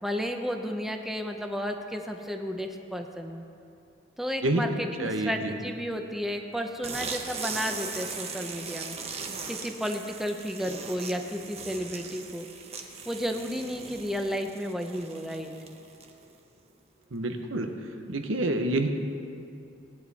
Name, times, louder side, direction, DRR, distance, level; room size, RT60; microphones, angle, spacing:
voice 1, 0.0-3.4 4.2-12.5 13.1-15.5, equal, ahead, 3 dB, 0.7 m, -33 dB
voice 2, 5.0-5.6 17.1-17.7 18.1-18.9, right 2 dB, 80° right, 5 dB, 1.0 m, -27 dB
sound 1, 6.8-16.3, right 4 dB, 30° right, 1.0 m, -39 dB
18.5 x 9.5 x 4.2 m, 2.6 s
head